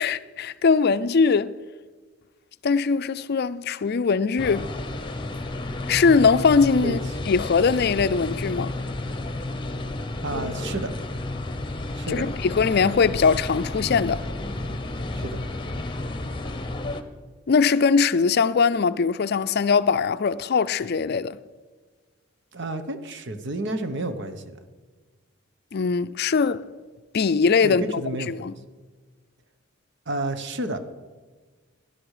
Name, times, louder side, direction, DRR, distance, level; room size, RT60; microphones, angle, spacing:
voice 1, 0.0-1.5 2.6-4.7 5.9-7.0 7.3-8.7 12.1-14.3 17.5-21.4 25.7-26.6 27.1-27.8 28.3-28.5, left 5 dB, 50° left, 0.4 m, -21 dB
sound 1, 4.4-17.0, left 2 dB, 25° left, 0.9 m, -31 dB
voice 2, 10.2-10.9 11.9-12.3 15.1-15.4 22.5-24.6 27.6-28.5 30.1-30.8, right 2 dB, 60° right, 1.2 m, -30 dB
18.0 x 11.5 x 4.9 m
head